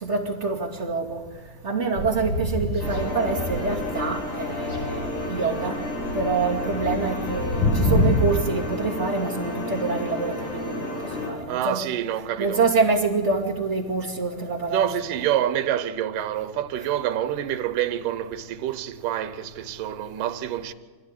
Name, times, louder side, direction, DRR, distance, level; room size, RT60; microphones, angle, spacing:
voice 1, 0.0-1.2 1.6-5.8 6.1-11.0 11.3-11.8 12.4-14.9, right 4 dB, 25° right, 2.4 m, -26 dB
sound 1, 1.9-4.3 4.5-8.3, left 1 dB, 30° left, 5.6 m, -26 dB
sound 2, 2.8-11.3, left 2 dB, 55° left, 5.4 m, -31 dB
voice 2, 11.5-12.6 14.7-20.7, right 11 dB, 85° right, 2.6 m, -27 dB
25.0 x 16.0 x 9.8 m
omnidirectional pair, 3.7 m